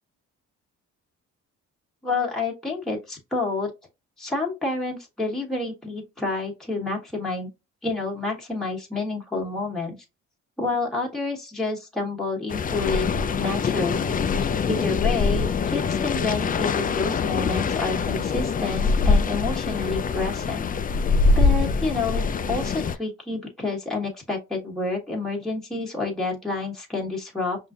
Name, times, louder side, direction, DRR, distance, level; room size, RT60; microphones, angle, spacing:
voice 1, 2.0-3.7 4.2-7.5 7.8-10.0 10.6-14.1 14.7-20.7 21.3-22.2 22.5-27.6, left 3 dB, ahead, 1.3 m, -29 dB
sound 1, 12.5-23.0, left 4 dB, 30° left, 0.4 m, -24 dB
5.3 x 2.7 x 2.4 m
cardioid pair, 90°, 30 cm